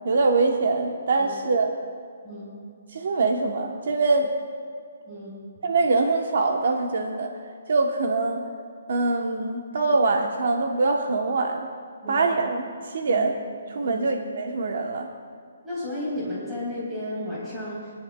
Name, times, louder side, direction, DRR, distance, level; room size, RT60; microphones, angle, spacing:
voice 1, 0.0-1.7 2.9-4.3 5.6-7.3 7.7-8.4 8.9-11.7 12.1-13.3 13.7-15.1, right 3 dB, 55° right, 3 dB, 0.8 m, -23 dB
voice 2, 5.1-5.4 12.0-12.2 13.1-13.2 13.8-14.0 15.6-17.9, left 1 dB, 5° right, -9 dB, 3.5 m, -33 dB
26.0 x 10.5 x 2.2 m, 2.3 s
hypercardioid pair, 170°, 0 cm